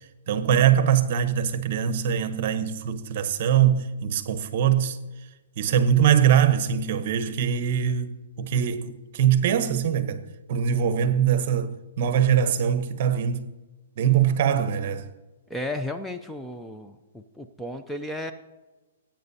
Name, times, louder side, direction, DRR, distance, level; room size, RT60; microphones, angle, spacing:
voice 1, 0.3-5.0 5.6-8.1 8.4-10.2 10.5-13.5 14.0-15.0, right 9 dB, 50° right, 0.9 m, -22 dB
voice 2, 15.5-18.3, left 1 dB, ahead, 0.4 m, -34 dB
18.5 x 8.8 x 2.7 m
hypercardioid pair, 150°, 0 cm